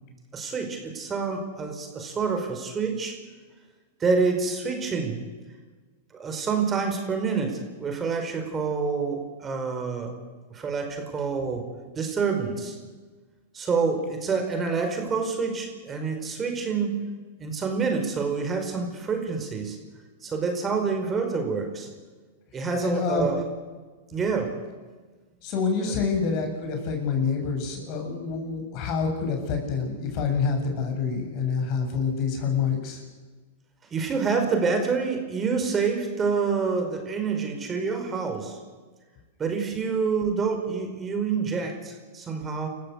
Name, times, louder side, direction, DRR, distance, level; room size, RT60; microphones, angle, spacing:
voice 1, 0.3-3.2 4.0-5.2 6.1-10.1 10.5-11.6 11.9-12.8 13.5-17.0 17.4-19.8 20.2-21.9 22.5-23.4 24.1-24.6 25.8-25.9 33.9-38.6 39.4-42.7, right 5 dB, 25° right, 4 dB, 5.0 m, -27 dB
voice 2, 22.8-23.3 25.4-33.0, left 5 dB, 50° left, 4 dB, 7.6 m, -27 dB
29.0 x 15.0 x 8.3 m, 1.4 s
hypercardioid pair, 110°, 0 cm